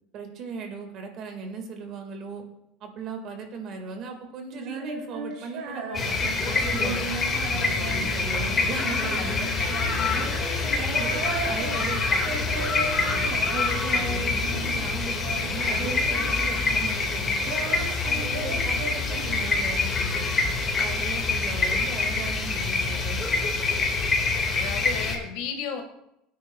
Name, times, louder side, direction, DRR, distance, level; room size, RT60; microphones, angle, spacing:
voice 1, 0.1-2.4 2.8-7.1 7.5-9.8 10.6-13.5 13.9-20.3 20.7-23.5, right 4 dB, 45° right, 5 dB, 1.7 m, -38 dB
Female singing, 4.5-14.9 15.1-16.8 17.1-19.8, right 3 dB, 60° right, 2.4 m, -36 dB
sound 1, 5.9-25.2, left 3 dB, 25° left, 1.8 m, -26 dB
voice 2, 9.6-10.1 24.6-25.8, left 7 dB, 70° left, 4 dB, 1.5 m, -35 dB
20.0 x 9.4 x 2.3 m, 0.84 s
cardioid pair, 150°, 0 cm